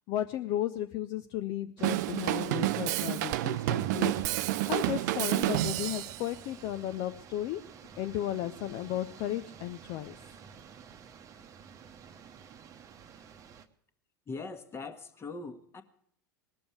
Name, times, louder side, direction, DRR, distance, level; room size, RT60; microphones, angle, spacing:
voice 1, 0.1-4.1 4.7-7.6 8.0-10.1, left 12 dB, 45° left, 9 dB, 0.6 m, -34 dB
sound 1, 1.8-13.7, right 7 dB, 30° right, 1.0 m, -50 dB
Drum kit / Drum, 1.8-6.2, right 16 dB, 55° right, 0.5 m, -29 dB
voice 2, 14.3-15.8, left 3 dB, 20° left, 9 dB, 1.4 m, -41 dB
19.5 x 6.9 x 8.7 m, 0.67 s
figure-of-eight pair, 85°, 11 cm